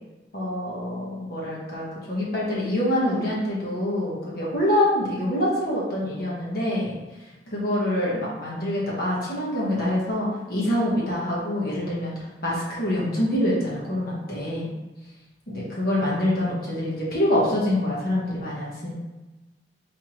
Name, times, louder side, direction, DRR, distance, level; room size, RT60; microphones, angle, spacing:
voice 1, 0.3-6.9 7.5-12.1 12.4-14.8 15.5-18.9, left 1 dB, 55° left, -6 dB, 1.1 m, -25 dB
3.5 x 3.4 x 3.0 m, 1.1 s
head